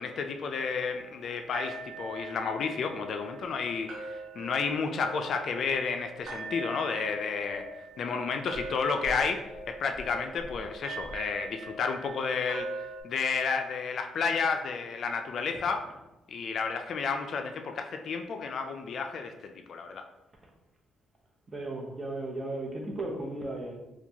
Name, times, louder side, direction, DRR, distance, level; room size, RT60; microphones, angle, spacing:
voice 1, 0.0-7.6 8.0-9.5 9.8-15.9 16.3-20.0, left 5 dB, 60° left, 5 dB, 0.3 m, -31 dB
sound 1, 0.8-13.0, right 1 dB, 85° right, 0.9 m, -42 dB
voice 2, 21.5-23.8, right 2 dB, 25° right, -1 dB, 0.8 m, -35 dB
4.2 x 2.3 x 2.8 m, 0.97 s
cardioid pair, 90°, 0 cm